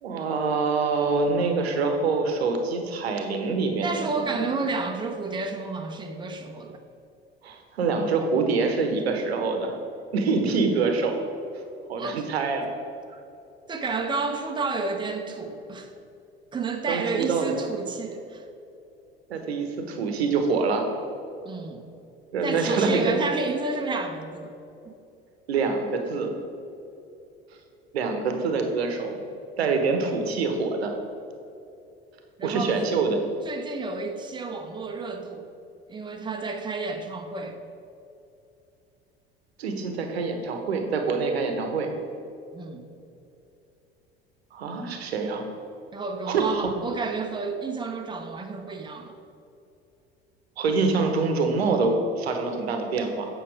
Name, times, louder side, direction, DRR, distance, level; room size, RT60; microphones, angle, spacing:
voice 1, 0.0-4.4 7.4-9.7 10.1-11.2 11.9-12.7 16.9-17.5 19.3-20.8 22.3-23.2 25.5-26.3 27.9-29.2 29.6-30.9 32.4-33.2 39.6-41.9 44.5-45.4 46.3-46.7 50.6-53.3, right 4 dB, 75° right, 5 dB, 1.0 m, -25 dB
voice 2, 3.8-6.8 8.9-9.0 12.0-12.2 13.1-13.2 13.7-15.9 16.5-18.4 21.4-21.8 22.4-24.5 24.8-25.0 32.4-32.7 33.4-35.5 35.9-37.6 42.5-42.8 45.9-49.2, right 4 dB, 15° right, 3 dB, 0.8 m, -31 dB
8.4 x 5.5 x 4.8 m, 2.7 s
figure-of-eight pair, 65°, 31 cm